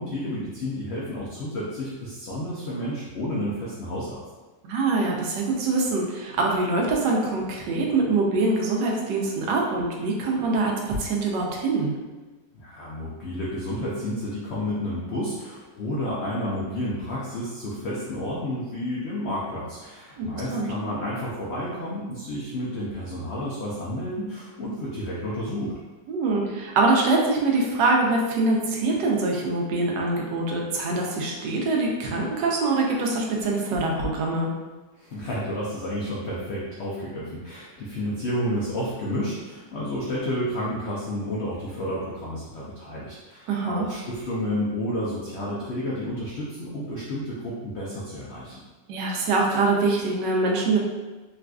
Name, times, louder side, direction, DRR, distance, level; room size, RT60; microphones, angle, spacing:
voice 1, 0.0-4.2 12.5-25.7 35.0-48.6, left 1 dB, 85° left, -6 dB, 0.5 m, -31 dB
voice 2, 4.6-11.9 20.2-20.7 26.1-34.5 43.5-43.8 48.9-50.8, right 3 dB, 90° right, -1 dB, 1.3 m, -24 dB
3.9 x 2.4 x 2.3 m, 1.2 s
omnidirectional pair, 1.9 m